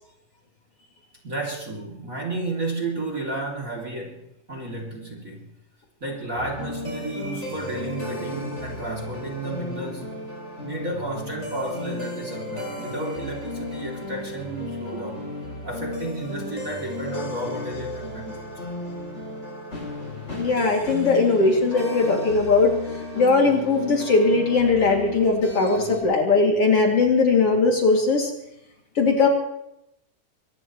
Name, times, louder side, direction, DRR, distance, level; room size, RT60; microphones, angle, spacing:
voice 1, 1.2-5.5 6.0-10.2 10.6-15.3 15.6-18.5, right 2 dB, 25° right, 2.8 m, -32 dB
sound 1, 6.4-26.0, left 1 dB, 20° left, 6.9 m, -34 dB
voice 2, 20.3-22.7 23.2-28.3 29.0-29.3, left 3 dB, 50° left, 3.4 m, -19 dB
24.0 x 19.0 x 3.1 m
omnidirectional pair, 3.7 m